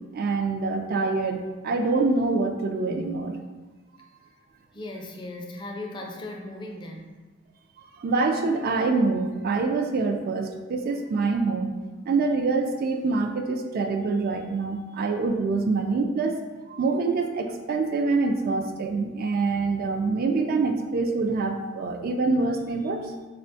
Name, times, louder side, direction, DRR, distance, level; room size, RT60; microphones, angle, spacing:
voice 1, 0.1-1.4 1.6-3.3 8.0-11.7 12.1-23.1, right 3 dB, 50° right, 4 dB, 0.3 m, -25 dB
voice 2, 4.7-7.2, left 2 dB, 25° left, 1 dB, 0.4 m, -37 dB
4.2 x 2.1 x 2.6 m, 1.2 s
head